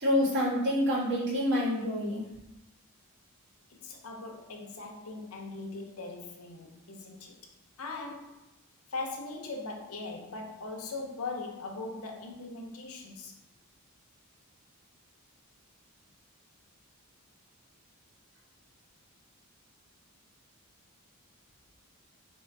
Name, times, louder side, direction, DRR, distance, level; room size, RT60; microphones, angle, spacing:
voice 1, 0.0-2.3, left 1 dB, 55° right, 1.6 m, -27 dB
voice 2, 3.7-7.4 7.8-8.5 8.9-13.4, left 3 dB, 75° left, 0.8 m, -40 dB
3.7 x 2.9 x 4.6 m
head